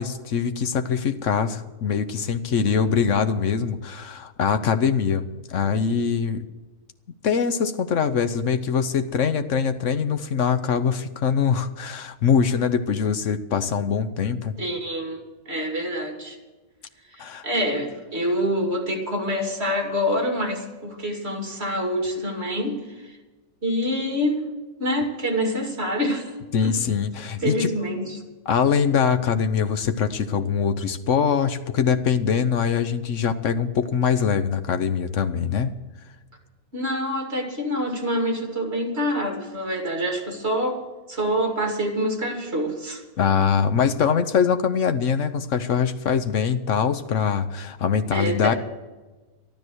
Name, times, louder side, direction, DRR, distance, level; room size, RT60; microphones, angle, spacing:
voice 1, 0.0-6.4 7.2-14.5 17.2-17.5 26.5-27.7 28.5-35.8 43.2-48.5, left 6 dB, 60° left, 9 dB, 1.1 m, -23 dB
voice 2, 14.6-16.4 17.1-23.1 23.6-24.5 24.8-26.4 26.6-26.8 27.4-28.2 36.7-40.8 41.1-43.0 48.1-48.6, equal, 45° right, 2 dB, 2.7 m, -26 dB
13.0 x 12.5 x 6.3 m, 1.2 s
omnidirectional pair, 1.6 m